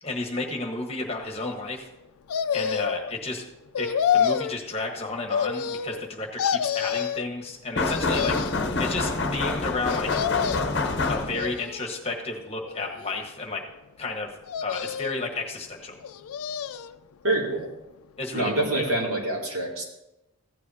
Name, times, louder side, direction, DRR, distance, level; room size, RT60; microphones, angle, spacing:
voice 1, 0.0-1.8 2.5-3.4 3.8-8.4 8.8-10.1 11.1-13.6 14.0-14.3 14.6-16.0 18.2-18.9, left 3 dB, 25° left, 1 dB, 1.3 m, -32 dB
sound 1, 2.3-3.1 3.7-4.6 5.3-6.1 6.4-7.3 7.9-8.7 9.9-10.8 11.3-12.0 12.7-13.5 14.5-15.3 16.0-17.0 17.3-17.4, left 8 dB, 80° left, 0.4 m, -28 dB
sound 2, 7.8-11.6, left 3 dB, 50° left, 0.8 m, -27 dB
voice 2, 17.2-17.7 18.3-19.8, right 2 dB, 75° right, -2 dB, 2.6 m, -26 dB
15.0 x 9.7 x 2.8 m, 0.93 s
head